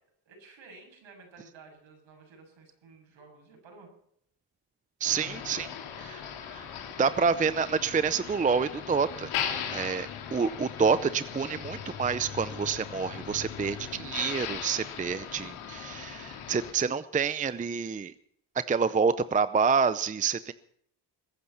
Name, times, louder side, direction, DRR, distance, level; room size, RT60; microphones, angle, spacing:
voice 1, 0.3-3.9, right 4 dB, 65° right, 2 dB, 7.6 m, -53 dB
Motor vehicle (road), 5.0-16.7, left 8 dB, 85° left, 3.2 m, -38 dB
voice 2, 5.0-5.7 6.0-6.7 7.0-9.3 9.7-18.1 18.7-20.5, right 5 dB, 15° right, 14 dB, 0.6 m, -28 dB
21.0 x 9.8 x 5.8 m, 0.70 s
cardioid pair, 95°, 49 cm